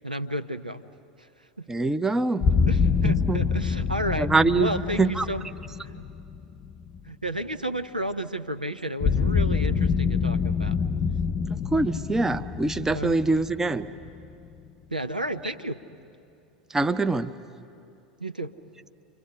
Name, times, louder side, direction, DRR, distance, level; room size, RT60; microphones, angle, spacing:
voice 1, 0.0-0.8 1.2-1.3 1.6-1.7 2.7-4.3 4.6-5.5 5.8-6.0 7.1-10.8 12.9-13.2 14.9-15.8 18.2-18.5, right 1 dB, 90° right, 9 dB, 0.7 m, -32 dB
voice 2, 1.7-2.4 3.0-3.4 4.2-5.3 11.7-13.9 16.7-17.3, right 3 dB, 10° right, 10 dB, 0.7 m, -24 dB
sound 1, 2.4-7.4 9.0-14.7, left 5 dB, 35° left, 0.5 m, -26 dB
29.5 x 25.0 x 5.7 m, 2.6 s
figure-of-eight pair, 80°, 4 cm